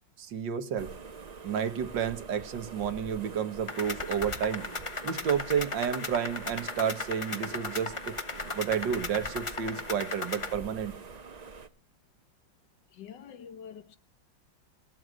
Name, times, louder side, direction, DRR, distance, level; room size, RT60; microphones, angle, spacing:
voice 1, 0.2-0.9 1.4-4.7 5.0-8.2 8.5-10.9, right 8 dB, 70° right, 1.8 m, -31 dB
sound 1, 0.8-11.7, right 4 dB, 40° right, 0.5 m, -45 dB
sound 2, 3.7-10.5, left 3 dB, 30° left, 0.5 m, -37 dB
voice 2, 12.9-14.0, left 8 dB, 70° left, 1.7 m, -46 dB
19.5 x 7.9 x 6.2 m
omnidirectional pair, 2.0 m